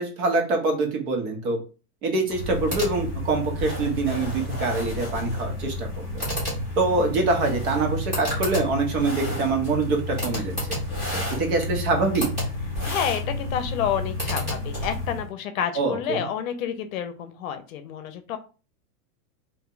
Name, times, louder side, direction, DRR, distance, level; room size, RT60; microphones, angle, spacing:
voice 1, 0.0-1.6 2.0-5.9 6.8-10.5 11.1-12.3 15.8-16.3, right 3 dB, 65° right, 2 dB, 1.2 m, -25 dB
sound 1, 2.3-15.3, left 1 dB, 15° right, 0.4 m, -30 dB
voice 2, 12.8-18.4, left 8 dB, 60° left, 9 dB, 0.6 m, -29 dB
2.6 x 2.1 x 3.8 m, 0.34 s
supercardioid pair, 170°, 47 cm